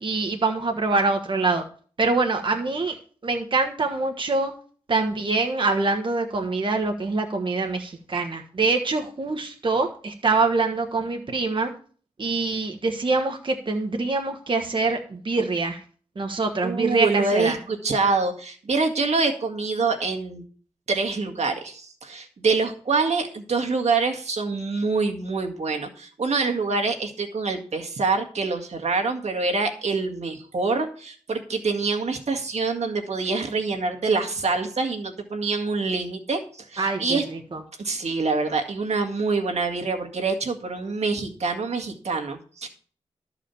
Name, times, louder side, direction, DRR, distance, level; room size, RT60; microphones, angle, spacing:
voice 1, 0.0-1.6 2.0-3.0 3.2-4.5 4.9-11.7 12.2-15.8 16.2-17.6 36.8-37.6, right 3 dB, 45° right, 4 dB, 1.3 m, -24 dB
voice 2, 16.6-20.4 20.9-37.2 37.8-42.7, right 4 dB, 70° right, 3 dB, 1.9 m, -25 dB
13.0 x 4.9 x 7.0 m, 0.44 s
wide cardioid pair, 90°, 12 cm